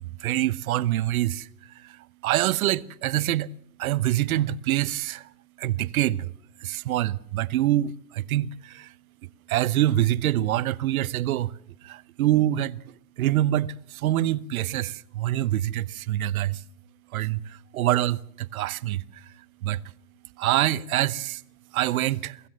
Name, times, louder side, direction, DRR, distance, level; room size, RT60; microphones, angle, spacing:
voice 1, 0.2-1.5 2.2-3.5 3.8-5.2 5.6-6.3 6.6-8.9 9.5-11.5 11.8-12.8 13.2-13.7 14.0-16.6 17.1-17.4 17.7-19.0 19.6-19.8 20.4-21.4 21.7-22.4, right 13 dB, 65° right, 0.9 m, -25 dB
23.5 x 15.5 x 7.4 m
hypercardioid pair, 105°, 45 cm